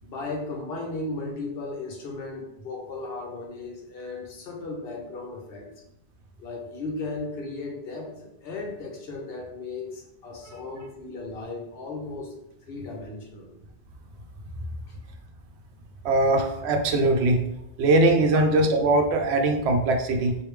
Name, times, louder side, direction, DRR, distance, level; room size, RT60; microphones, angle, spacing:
voice 1, 0.0-5.7 6.4-12.4 12.6-13.5 14.9-15.0 18.3-18.4, left 3 dB, 65° left, 0 dB, 0.9 m, -36 dB
voice 2, 16.0-17.4 17.8-20.4, right 2 dB, 80° right, 3 dB, 0.8 m, -21 dB
3.2 x 2.6 x 3.2 m, 0.83 s
omnidirectional pair, 1.1 m